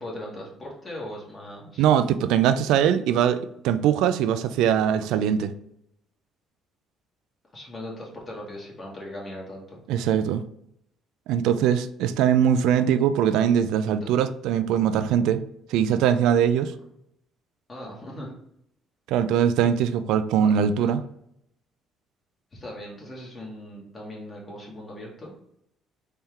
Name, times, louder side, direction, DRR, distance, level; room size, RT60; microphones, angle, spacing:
voice 1, 0.0-1.9 7.5-9.8 13.8-14.0 17.7-18.3 20.4-20.9 22.5-25.3, left 1 dB, 30° left, -2 dB, 1.8 m, -39 dB
voice 2, 1.8-5.5 9.9-10.4 11.3-15.4 15.7-16.7 19.1-21.0, right 9 dB, 85° right, 11 dB, 0.3 m, -21 dB
4.2 x 3.4 x 3.6 m, 0.75 s
cardioid pair, 115°, 0 cm